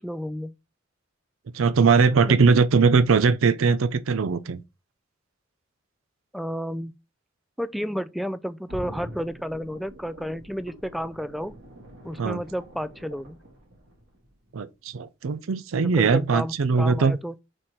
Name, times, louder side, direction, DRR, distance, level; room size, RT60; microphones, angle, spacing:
voice 1, 0.0-0.5 2.3-2.6 6.3-6.9 7.6-11.6 12.0-13.4 15.8-17.3, equal, ahead, 0.3 m, -32 dB
voice 2, 1.5-4.6 12.2-12.4 14.5-17.2, right 5 dB, 85° right, 0.5 m, -20 dB
sound 1, 8.7-14.5 14.9-15.0, equal, 65° right, 2.1 m, -44 dB
4.4 x 4.4 x 4.9 m
head